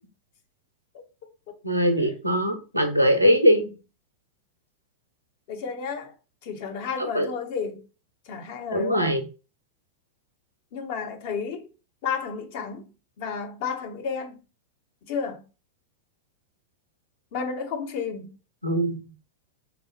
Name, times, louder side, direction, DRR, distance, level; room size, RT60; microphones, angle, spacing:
voice 1, 1.6-3.7 7.0-7.3 8.7-9.2 18.6-19.0, equal, 85° right, 0.5 m, -21 dB
voice 2, 5.5-6.1 6.4-7.8 8.3-9.2 10.7-11.7 12.0-12.9 13.2-14.4 15.0-15.4 17.3-18.3, left 6 dB, 50° left, 0.6 m, -32 dB
3.9 x 2.0 x 2.8 m
figure-of-eight pair, 90°, 0 cm